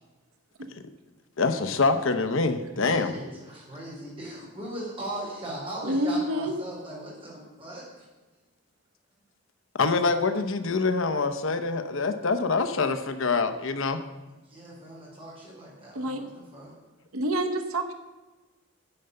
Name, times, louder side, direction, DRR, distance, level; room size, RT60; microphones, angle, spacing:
voice 1, 1.4-3.1 9.8-14.0, left 4 dB, 65° left, 9 dB, 0.8 m, -25 dB
voice 2, 2.8-8.1 14.4-16.7, right 1 dB, 25° right, -5 dB, 4.4 m, -39 dB
voice 3, 5.8-6.5 15.9-16.2 17.1-17.9, right 1 dB, 80° right, 6 dB, 0.9 m, -27 dB
10.0 x 7.9 x 6.8 m, 1.2 s
head